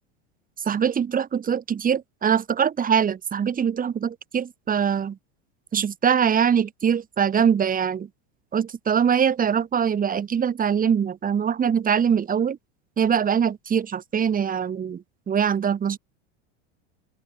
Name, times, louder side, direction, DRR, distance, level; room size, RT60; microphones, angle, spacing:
voice 1, 0.6-5.2 5.7-8.1 8.5-12.6 13.0-16.0, right 7 dB, 25° right, 3.4 m, -23 dB
open air
supercardioid pair, 120°, 35 cm